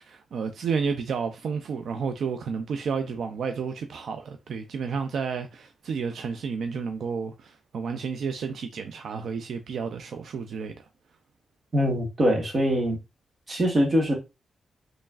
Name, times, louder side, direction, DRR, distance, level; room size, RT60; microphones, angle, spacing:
voice 1, 0.0-10.9, right 5 dB, 65° right, 0.4 m, -31 dB
voice 2, 11.7-13.0 13.5-14.1, equal, 30° right, 1.3 m, -23 dB
4.6 x 3.1 x 2.4 m
wide cardioid pair, 170°, 0 cm